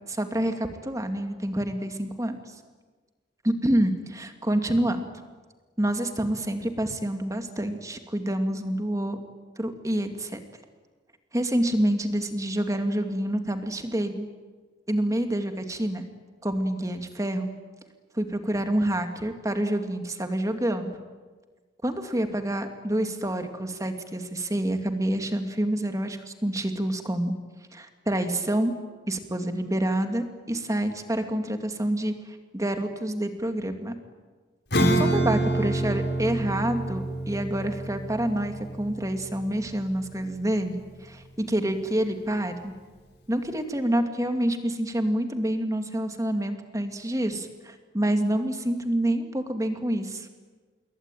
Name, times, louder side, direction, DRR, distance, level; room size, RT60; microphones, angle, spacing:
voice 1, 0.1-2.4 3.4-5.1 5.8-9.2 9.6-10.4 11.3-14.3 14.9-16.0 16.4-17.5 18.1-20.9 21.8-27.3 27.7-28.7 29.1-33.9 34.9-42.7 43.3-50.3, right 1 dB, 20° right, 6 dB, 2.3 m, -27 dB
Acoustic guitar / Strum, 34.7-40.7, right 1 dB, 65° left, 5.0 m, -28 dB
27.5 x 22.0 x 9.2 m, 1.4 s
head